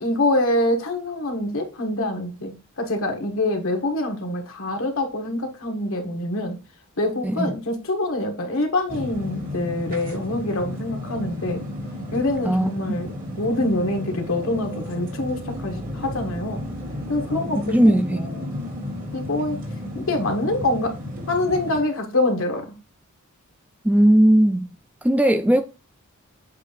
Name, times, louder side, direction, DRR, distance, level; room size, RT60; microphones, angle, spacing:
voice 1, 0.0-6.6 7.0-11.6 12.1-13.1 13.4-16.6 17.1-18.5 19.1-19.6 19.9-20.9 21.3-22.7, left 2 dB, 65° left, 1.6 m, -25 dB
sound 1, 8.9-21.8, left 1 dB, 40° right, 2.1 m, -33 dB
voice 2, 12.4-13.0 17.6-18.4 23.8-24.7 25.0-25.6, right 1 dB, 5° right, 0.4 m, -18 dB
7.6 x 2.7 x 5.2 m
head